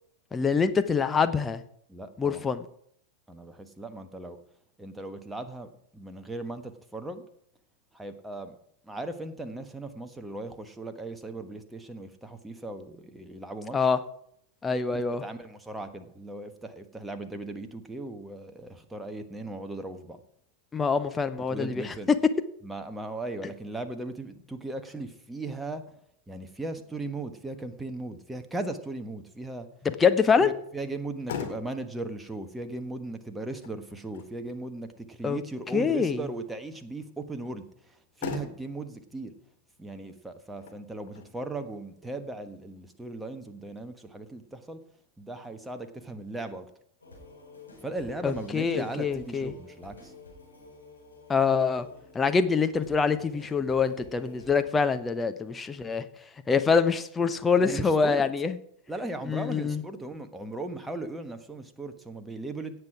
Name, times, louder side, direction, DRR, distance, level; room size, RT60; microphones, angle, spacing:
voice 1, 0.3-1.6 2.2-2.6 13.7-14.0 14.6-15.2 20.7-21.9 30.0-30.5 35.2-35.4 35.7-36.2 48.2-49.5 51.3-51.9 52.1-56.0 56.5-58.5 59.3-59.8, left 5 dB, 15° left, 0.8 m, -25 dB
voice 2, 1.9-2.5 3.3-4.4 4.8-7.2 7.9-8.5 8.8-13.9 14.9-20.2 21.5-22.1 22.6-25.9 26.3-29.7 30.4-39.3 39.8-44.8 45.2-46.7 47.8-50.1 57.6-58.2 58.9-62.7, right 2 dB, 5° right, 1.4 m, -38 dB
Motor vehicle (road), 30.9-43.8, left 7 dB, 55° left, 2.1 m, -45 dB
sound 1, 47.0-54.6, left 2 dB, 80° left, 4.7 m, -50 dB
17.0 x 7.8 x 4.9 m
figure-of-eight pair, 90°, 0 cm